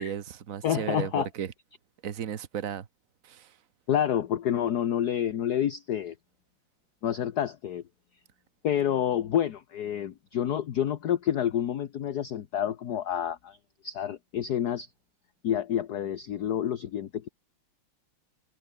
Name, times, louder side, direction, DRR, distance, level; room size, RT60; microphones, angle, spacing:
voice 1, 0.0-1.5 2.0-2.9 3.2-3.6, right 9 dB, 45° right, 1.4 m, -34 dB
voice 2, 0.6-1.3 3.9-6.1 7.0-7.8 8.6-13.6 13.8-14.9 15.4-17.3, left 10 dB, 55° left, 1.4 m, -28 dB
omnidirectional pair, 2.4 m